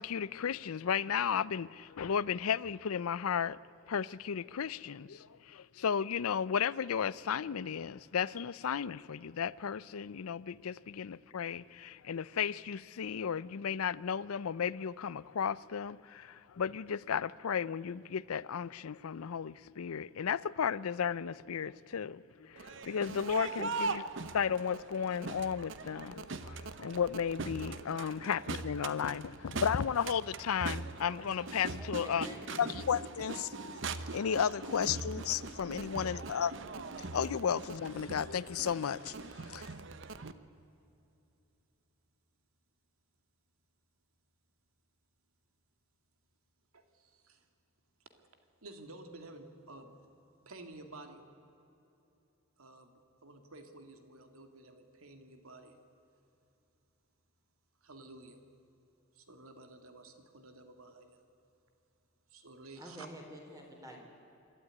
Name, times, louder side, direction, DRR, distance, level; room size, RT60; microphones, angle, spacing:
voice 1, 0.0-3.6 3.9-24.0 24.3-32.3 32.6-33.7 34.1-36.5 37.0-39.7, left 7 dB, 85° left, 0.5 m, -34 dB
Crowd, 22.6-40.3, right 3 dB, 60° right, 0.9 m, -41 dB
voice 2, 31.8-32.7 35.7-36.4 62.8-64.0, equal, 15° right, 3.8 m, -49 dB
voice 3, 46.7-47.5 48.6-49.9 50.5-51.2 52.6-55.8 57.8-58.4 59.1-61.2 62.3-63.1, right 2 dB, 80° right, 2.2 m, -52 dB
26.5 x 12.5 x 9.7 m
head